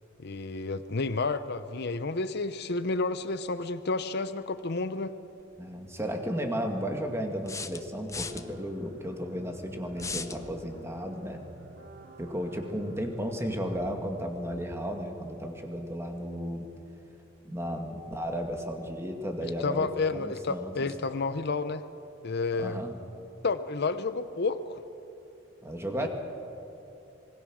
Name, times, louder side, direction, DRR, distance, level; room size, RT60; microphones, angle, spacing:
voice 1, 0.2-5.2 19.6-21.8 22.2-22.8 23.4-24.8 26.0-26.1, left 3 dB, 60° left, 11 dB, 0.8 m, -30 dB
sound 1, 5.4-5.5 7.5-8.4 10.0-10.4, left 4 dB, 15° left, 0.8 m, -36 dB
voice 2, 5.6-11.4 12.2-16.7 17.4-20.9 22.5-22.9 25.6-26.1, equal, 15° right, 3 dB, 2.3 m, -34 dB
sound 2, 8.1-13.9, right 1 dB, 80° right, 4.9 m, -49 dB
26.5 x 21.0 x 6.4 m, 2.8 s
head